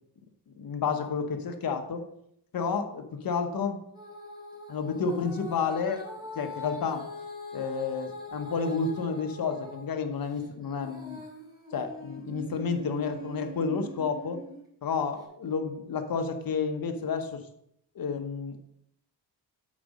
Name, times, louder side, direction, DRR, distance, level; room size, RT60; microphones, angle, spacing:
voice 1, 0.6-2.0 2.5-3.8 4.7-6.1 6.3-7.1 7.5-11.2 11.7-14.4 14.8-17.4 17.9-18.7, left 5 dB, 55° left, 6 dB, 1.0 m, -30 dB
Female singing, 3.9-9.9 10.3-14.6 15.2-15.3, left 1 dB, 10° right, 2.6 m, -43 dB
8.5 x 4.1 x 5.2 m, 0.75 s
cardioid pair, 100°, 41 cm